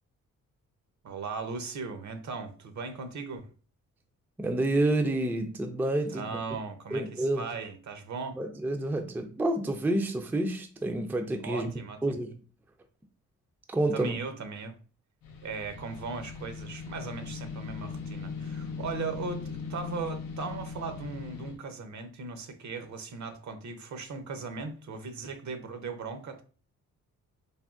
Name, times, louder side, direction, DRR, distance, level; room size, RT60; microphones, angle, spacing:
voice 1, 1.0-3.5 6.1-8.4 11.4-12.0 13.9-14.7 15.4-26.4, right 4 dB, 60° right, 0.7 m, -38 dB
voice 2, 4.4-6.4 6.9-7.5 8.4-11.7 12.0-12.3 13.7-14.2, right 1 dB, 5° right, 0.4 m, -29 dB
sound 1, 15.2-21.6, left 5 dB, 85° left, 0.6 m, -39 dB
3.4 x 2.1 x 2.4 m
cardioid pair, 70°, 33 cm